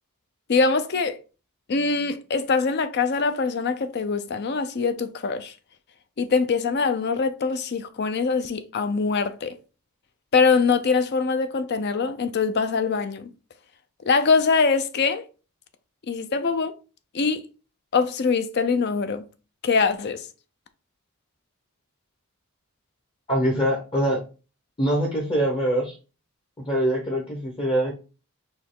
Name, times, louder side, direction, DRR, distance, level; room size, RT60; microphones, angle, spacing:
voice 1, 0.5-1.2 1.7-5.5 6.2-9.6 10.3-13.3 14.0-15.2 16.1-16.7 17.1-17.4 17.9-19.2 19.6-20.2, left 4 dB, 50° left, 0.5 m, -23 dB
voice 2, 23.3-24.2 24.8-26.0 26.6-27.9, right 1 dB, 25° left, 0.8 m, -23 dB
4.4 x 2.8 x 3.7 m
head